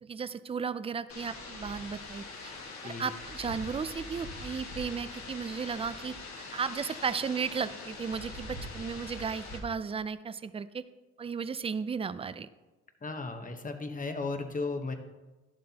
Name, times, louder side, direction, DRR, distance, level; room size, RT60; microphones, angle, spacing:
voice 1, 0.0-2.5 2.8-10.8 11.2-12.5, right 6 dB, 20° right, 14 dB, 0.4 m, -35 dB
sound 1, 1.1-9.6, left 2 dB, 70° left, 2.0 m, -43 dB
voice 2, 13.0-14.9, left 3 dB, 25° left, 6 dB, 1.0 m, -35 dB
11.0 x 7.6 x 2.9 m, 1.2 s
cardioid pair, 90°, 30 cm